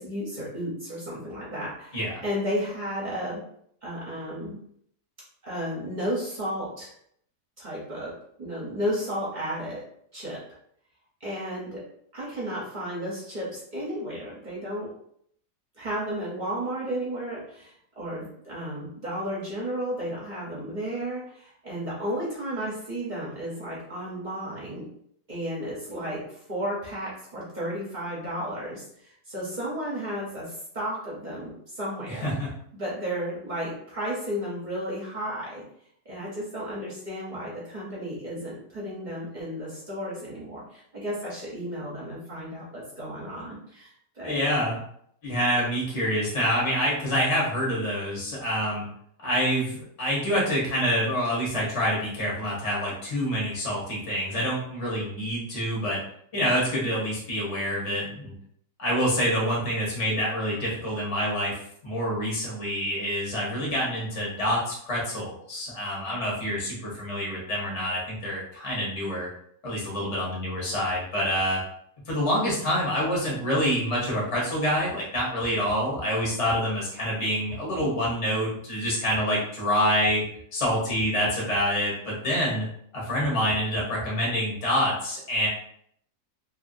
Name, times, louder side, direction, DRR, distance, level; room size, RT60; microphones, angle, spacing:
voice 1, 0.0-3.4 3.8-4.6 5.4-6.9 7.6-9.8 10.1-10.4 11.2-11.8 12.1-14.9 15.8-24.9 25.3-32.3 32.7-35.6 36.0-44.4, equal, 35° right, -6 dB, 0.8 m, -33 dB
voice 2, 1.9-2.2 32.1-32.5 44.2-44.8 45.2-48.9 49.2-56.0 56.3-58.3 58.8-61.5 61.8-69.3 69.6-71.6 72.1-80.2 80.5-82.7 82.9-85.5, equal, 25° left, -4 dB, 0.8 m, -27 dB
2.7 x 2.7 x 2.6 m, 0.67 s
omnidirectional pair, 1.8 m